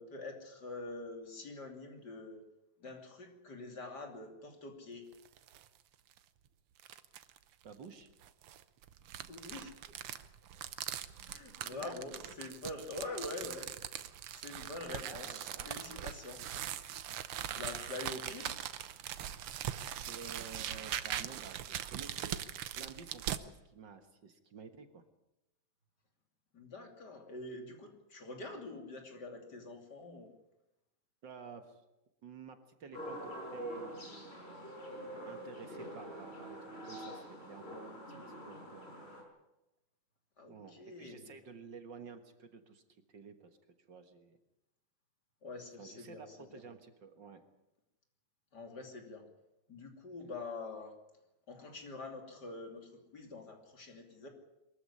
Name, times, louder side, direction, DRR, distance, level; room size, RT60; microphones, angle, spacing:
voice 1, 0.0-2.4 2.8-5.1 9.3-10.0 11.2-13.7 14.3-16.4 17.4-18.6 26.5-30.3 40.4-41.3 45.4-46.6 48.5-49.2 49.7-50.9 51.5-54.3, left 2 dB, 50° left, 4 dB, 3.4 m, -45 dB
sound 1, 5.1-5.7 6.1-6.2 6.8-7.4 8.2-23.4, right 11 dB, 90° right, 1.9 m, -41 dB
voice 2, 7.6-8.1 11.7-12.0 15.1-15.7 20.1-25.0 31.2-31.8 32.2-34.6 35.3-36.6 36.8-37.8 38.1-38.2 38.4-39.1 40.5-42.8 43.1-43.6 43.9-44.4 45.8-47.4, right 5 dB, 60° right, 8 dB, 2.1 m, -52 dB
sound 2, 32.9-39.2, right 1 dB, 30° left, 5.1 m, -45 dB
23.0 x 14.0 x 9.9 m, 0.95 s
omnidirectional pair, 2.3 m